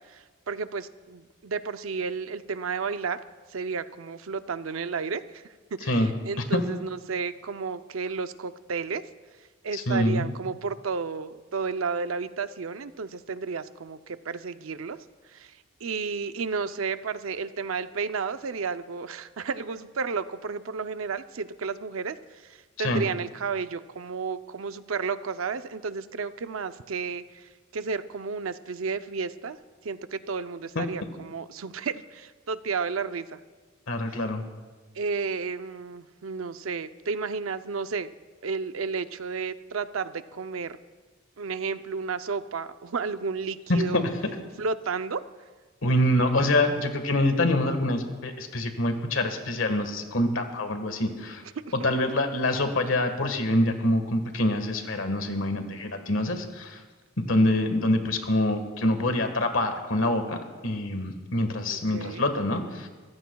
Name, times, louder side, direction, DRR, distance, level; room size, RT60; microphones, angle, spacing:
voice 1, 0.0-3.2 3.5-5.4 5.7-9.0 9.6-15.0 15.3-29.6 29.8-33.4 34.9-38.1 38.4-40.8 41.4-44.0 44.6-45.2 51.4-51.5 61.6-62.3, right 5 dB, 85° right, 11 dB, 0.6 m, -32 dB
voice 2, 9.7-10.2 22.8-23.0 30.7-30.8 33.9-34.4 43.7-44.1 45.8-51.4 51.7-56.8 57.3-60.4 60.6-62.9, left 1 dB, 75° left, 6 dB, 1.5 m, -25 dB
24.0 x 15.0 x 2.3 m, 1.3 s
head